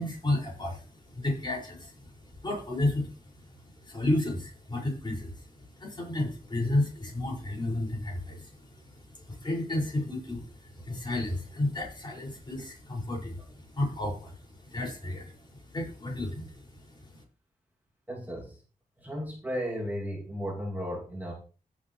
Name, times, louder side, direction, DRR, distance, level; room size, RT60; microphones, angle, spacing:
voice 1, 0.0-17.2, left 1 dB, 30° left, -2 dB, 5.6 m, -32 dB
voice 2, 18.1-18.5 19.0-21.3, equal, 10° right, -3 dB, 2.6 m, -34 dB
16.5 x 6.7 x 3.2 m, 0.36 s
wide cardioid pair, 110°, 15 cm